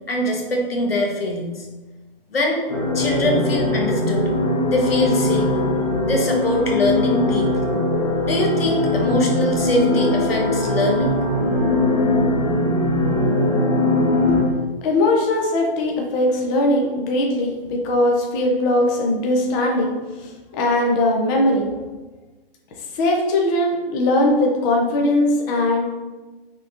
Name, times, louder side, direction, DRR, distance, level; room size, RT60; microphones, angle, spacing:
voice 1, 0.1-1.7 2.3-2.6 2.9-4.3 4.7-5.5 6.0-7.5 8.2-11.2, left 1 dB, 85° left, 1 dB, 1.2 m, -23 dB
sound 1, 2.7-14.4, left 1 dB, 45° left, 1.2 m, -20 dB
voice 2, 14.8-17.5 17.8-19.9 20.2-21.6 22.9-26.0, left 1 dB, 20° left, 0 dB, 0.6 m, -20 dB
5.7 x 3.4 x 2.5 m, 1.2 s
hypercardioid pair, 135°, 29 cm